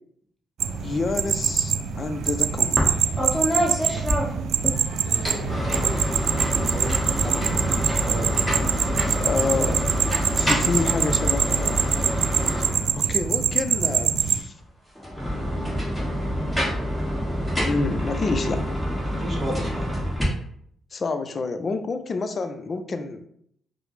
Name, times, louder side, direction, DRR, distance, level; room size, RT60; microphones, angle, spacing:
sound 1, 0.6-14.4, right 7 dB, 70° right, 0.3 m, -25 dB
voice 1, 0.8-3.1 9.0-9.9 10.3-11.9 12.9-14.6 17.6-18.6 20.9-23.2, left 3 dB, 40° left, 9 dB, 0.4 m, -28 dB
sound 2, 2.8-2.9 3.2-4.7 5.1-13.2 14.9-20.2, equal, ahead, 1.3 m, -26 dB
voice 2, 5.0-9.4 18.2-18.5 19.2-19.9, equal, 20° right, -3 dB, 1.0 m, -35 dB
4.7 x 2.0 x 3.2 m, 0.69 s
cardioid pair, 90°, 0 cm